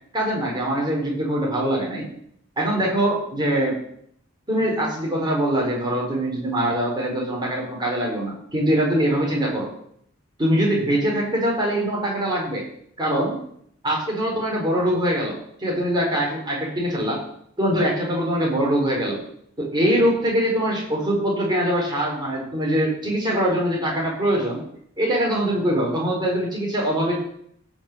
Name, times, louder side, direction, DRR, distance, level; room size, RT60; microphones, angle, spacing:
voice 1, 0.1-2.1 2.6-3.8 4.5-9.7 10.4-12.6 13.0-13.3 13.8-17.2 17.6-19.2 19.6-24.6 25.0-27.2, right 1 dB, 20° right, -2 dB, 4.0 m, -23 dB
15.5 x 5.5 x 6.8 m, 0.68 s
head